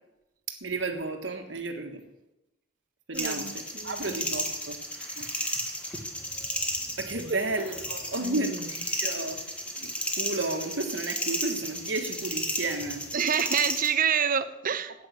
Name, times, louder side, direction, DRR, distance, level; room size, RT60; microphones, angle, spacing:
voice 1, 0.5-2.0 3.1-5.7 7.0-9.4 9.7-13.0, right 2 dB, 85° right, 6 dB, 1.6 m, -33 dB
sound 1, 3.1-13.9, left 1 dB, 5° left, 1.7 m, -33 dB
voice 2, 3.1-4.2 7.3-7.4 8.2-8.6 13.1-14.9, right 7 dB, 50° right, 13 dB, 0.7 m, -28 dB
9.4 x 8.6 x 8.2 m, 0.94 s
head